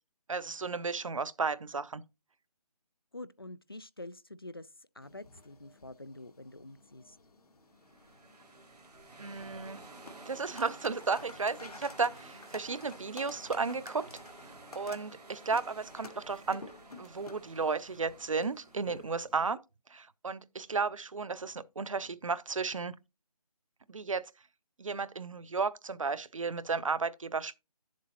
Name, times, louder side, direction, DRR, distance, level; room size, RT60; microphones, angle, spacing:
voice 1, 0.3-2.0 9.2-9.8 10.3-14.1 14.4-16.6 17.0-19.6 19.9-22.9 23.9-24.3 24.8-27.6, right 4 dB, 55° right, 0.6 m, -34 dB
voice 2, 3.1-4.7 5.0-7.2 19.4-19.6, left 2 dB, 40° left, 0.4 m, -46 dB
sound 1, 5.0-19.5, left 3 dB, 70° left, 1.7 m, -53 dB
sound 2, 7.7-19.1, right 2 dB, 90° right, 2.3 m, -52 dB
11.5 x 7.4 x 2.8 m
hypercardioid pair, 180°, 20 cm